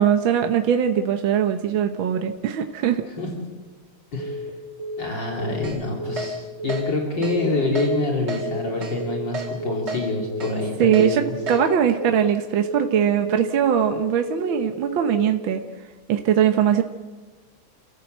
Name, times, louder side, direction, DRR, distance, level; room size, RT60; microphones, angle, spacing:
voice 1, 0.0-3.0 10.8-11.2 11.5-15.6 16.1-16.8, right 9 dB, 70° right, 6 dB, 1.8 m, -21 dB
voice 2, 4.1-4.5 5.0-11.3, left 2 dB, 60° left, -1 dB, 3.8 m, -26 dB
Telephone, 4.2-4.5 4.8-5.1 5.4-5.7 6.0-6.3 6.6-6.9 7.2-7.5 7.8-8.1 8.4-8.7 9.0-9.3 9.6-9.9 10.2-10.5 10.8-11.1 11.4-11.7 12.0-12.3 12.6-12.9 13.2-13.5 13.8-14.1 14.4-14.7 15.0-15.3, left 1 dB, 90° right, 3.6 m, -32 dB
Keyboard (musical), 5.6-5.8 6.2-6.3 6.7-6.8 7.2-7.4 7.8-7.9 8.3-8.4 8.8-8.9 9.3-9.5 9.9-10.0 10.4-10.5 10.9-11.1 11.5-11.6, right 3 dB, 55° right, 4.3 m, -31 dB
29.5 x 15.0 x 7.9 m, 1.3 s
omnidirectional pair, 2.3 m